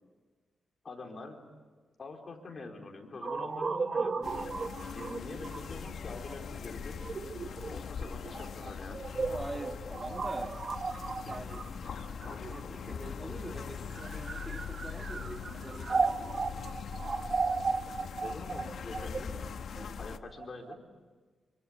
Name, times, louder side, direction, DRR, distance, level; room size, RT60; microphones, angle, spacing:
voice 1, 0.8-1.4 2.0-4.3 4.9-7.0 7.7-9.0 18.2-19.3 20.0-20.8, left 3 dB, 40° left, 2 dB, 4.3 m, -45 dB
sound 1, 3.2-13.1 13.8-20.8, right 4 dB, 40° right, 1.0 m, -36 dB
sound 2, 4.2-20.2, left 6 dB, 70° left, 1.1 m, -41 dB
voice 2, 9.2-10.6 11.2-11.6 12.2-16.4, right 2 dB, 20° right, 4 dB, 1.6 m, -44 dB
26.5 x 25.0 x 8.7 m, 1.4 s
wide cardioid pair, 135°, 0 cm